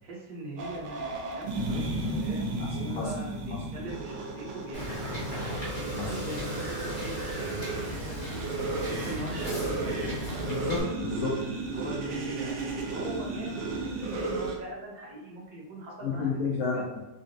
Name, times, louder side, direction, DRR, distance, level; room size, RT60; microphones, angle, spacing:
voice 1, 0.0-5.6 6.0-8.4 8.8-10.6 11.6-16.9, right 1 dB, 60° right, -4 dB, 1.2 m, -41 dB
sound 1, 0.6-14.6, right 2 dB, 85° right, 1.3 m, -34 dB
Wind / Boat Water vehicle, 4.7-10.8, equal, 35° left, 0.9 m, -36 dB
voice 2, 10.5-11.4 16.0-17.0, left 5 dB, 70° left, -3 dB, 0.9 m, -31 dB
3.9 x 2.1 x 2.5 m, 1.0 s
omnidirectional pair, 2.0 m